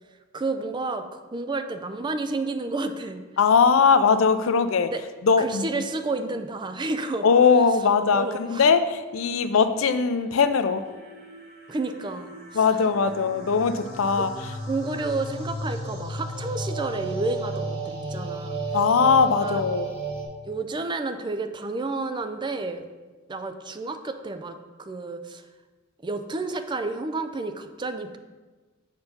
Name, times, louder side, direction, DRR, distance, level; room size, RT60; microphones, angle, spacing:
voice 1, 0.3-3.2 4.9-5.0 5.4-7.3 8.1-8.7 11.7-12.7 14.1-14.3 14.7-18.6 19.4-19.6 20.5-22.8 23.3-25.4 26.0-28.2, right 3 dB, 20° right, 8 dB, 0.4 m, -30 dB
voice 2, 3.4-4.9 5.2-5.8 7.2-10.8 12.5-14.3 18.7-19.9, left 5 dB, 70° left, 10 dB, 0.5 m, -20 dB
sound 1, 8.9-20.3, right 2 dB, 50° right, 1.4 m, -35 dB
7.0 x 4.4 x 5.1 m, 1.3 s
head